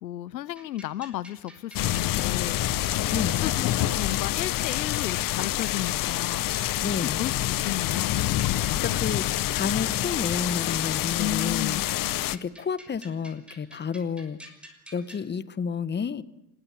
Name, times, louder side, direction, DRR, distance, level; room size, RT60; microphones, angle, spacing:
voice 1, 0.0-3.0 3.4-6.7 7.0-7.4 7.6-8.2 11.2-11.9, left 14 dB, 85° left, 0.8 m, -33 dB
sound 1, 0.6-15.3, equal, ahead, 6.1 m, -50 dB
sound 2, 1.7-12.4, left 14 dB, 40° left, 1.1 m, -27 dB
voice 2, 3.1-3.5 6.8-7.2 8.7-11.8 12.4-14.4 14.9-16.2, left 6 dB, 20° left, 1.3 m, -30 dB
25.5 x 22.0 x 7.5 m
hypercardioid pair, 80°, 50 cm